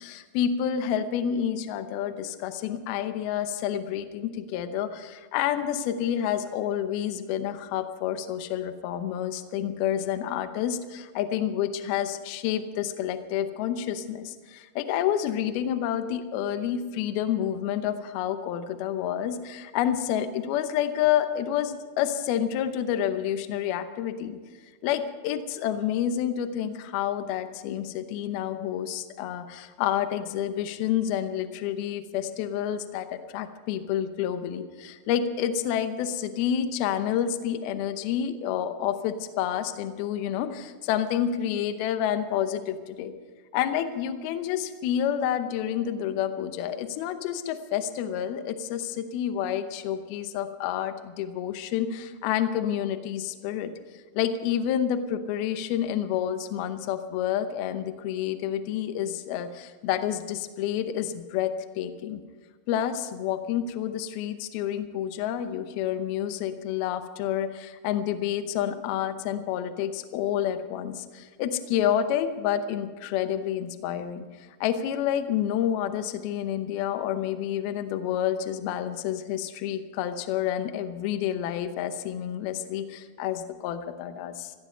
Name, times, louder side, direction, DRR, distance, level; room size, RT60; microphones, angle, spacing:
voice 1, 0.0-24.4 24.8-43.1 43.5-53.7 54.1-62.2 62.7-74.3 74.6-84.5, left 10 dB, 75° left, 9 dB, 2.3 m, -29 dB
15.5 x 15.0 x 5.6 m, 1.4 s
omnidirectional pair, 5.5 m